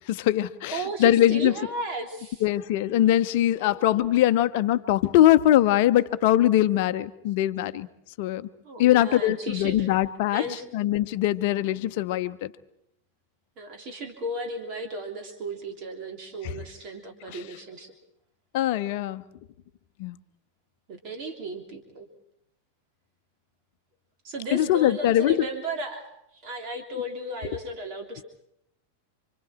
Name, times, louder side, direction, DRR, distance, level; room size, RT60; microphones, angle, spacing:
voice 1, 0.1-1.5 2.4-7.9 8.2-8.5 8.8-10.4 10.7-12.5 16.4-16.5 17.3-17.4 18.5-19.2 20.0-20.2 24.5-25.4, left 13 dB, 50° left, 12 dB, 0.9 m, -22 dB
voice 2, 0.7-2.4 3.5-4.0 8.6-9.9 10.3-10.7 13.6-17.9 20.9-22.1 24.2-28.2, right 2 dB, 40° right, 3 dB, 3.3 m, -35 dB
28.5 x 25.5 x 4.5 m, 0.78 s
figure-of-eight pair, 90°, 0 cm